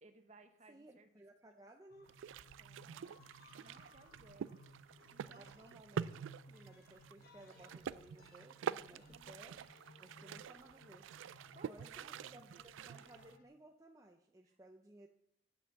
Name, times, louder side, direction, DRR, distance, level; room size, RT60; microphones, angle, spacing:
voice 1, 0.0-1.2 2.6-4.5 5.1-5.6 8.9-9.4 11.3-12.6 14.4-14.6, right 2 dB, 40° right, 8 dB, 0.9 m, -63 dB
voice 2, 0.7-2.1 5.3-9.6 10.0-11.1 11.7-15.1, right 1 dB, 20° right, 3 dB, 0.5 m, -59 dB
sound 1, 1.9-13.4, left 1 dB, 50° left, 0.9 m, -62 dB
sound 2, 2.0-13.4, right 7 dB, 85° right, 0.3 m, -47 dB
8.6 x 5.5 x 7.3 m, 0.74 s
head